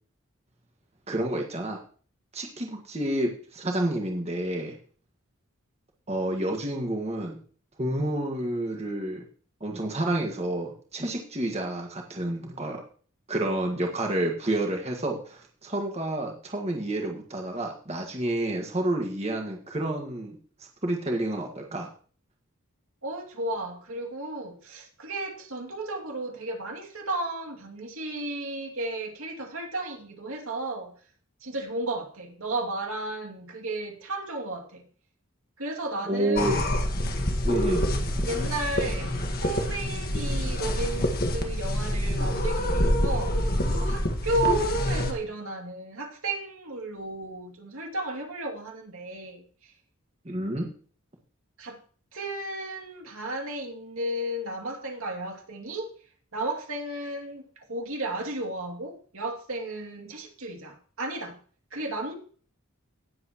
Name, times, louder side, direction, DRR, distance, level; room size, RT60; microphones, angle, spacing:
voice 1, 1.1-1.8 2.3-4.7 6.1-7.3 7.8-9.2 9.6-12.8 13.3-20.4 20.8-21.9 36.0-36.6 37.4-37.9 50.2-50.7, right 1 dB, 30° right, 1.7 m, -29 dB
voice 2, 23.0-30.9 31.4-34.8 35.6-36.6 38.2-43.4 43.7-49.4 51.6-51.8 52.1-55.9 56.3-57.4 57.7-61.4 61.7-62.1, right 2 dB, 80° right, 2.6 m, -33 dB
sound 1, 36.4-45.1, left 1 dB, 45° left, 1.6 m, -26 dB
18.5 x 7.8 x 3.0 m
head